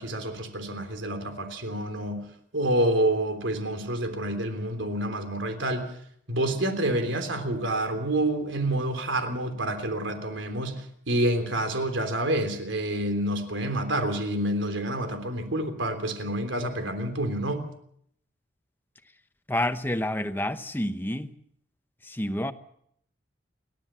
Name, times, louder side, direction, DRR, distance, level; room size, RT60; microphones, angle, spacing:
voice 1, 0.0-2.3 2.5-5.9 6.3-17.6, right 1 dB, 80° right, 3.4 m, -28 dB
voice 2, 19.5-21.3 22.0-22.5, left 1 dB, 10° left, 0.9 m, -28 dB
29.5 x 12.5 x 7.4 m
head